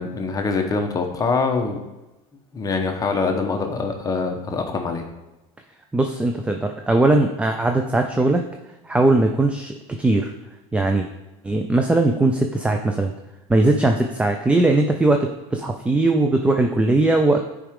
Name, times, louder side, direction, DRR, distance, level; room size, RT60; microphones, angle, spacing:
voice 1, 0.0-1.8 2.5-5.1, left 4 dB, 20° left, 3 dB, 1.0 m, -24 dB
voice 2, 5.9-8.4 8.9-10.3 10.7-11.1 11.4-13.1 13.5-17.4, right 2 dB, 5° right, 4 dB, 0.4 m, -19 dB
10.0 x 4.8 x 3.7 m, 1.0 s
supercardioid pair, 125°, 18 cm